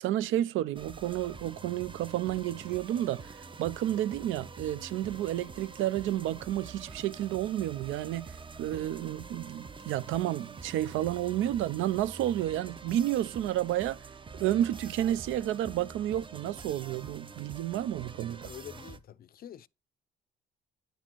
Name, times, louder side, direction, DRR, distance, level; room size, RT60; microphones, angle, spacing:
voice 1, 0.0-14.0 14.4-18.5, right 12 dB, 85° right, 0.4 m, -31 dB
sound 1, 0.7-19.0, right 4 dB, 25° right, 0.6 m, -46 dB
voice 2, 18.4-19.7, left 10 dB, 50° left, 0.4 m, -46 dB
9.1 x 4.2 x 3.0 m
cardioid pair, 90°, 20 cm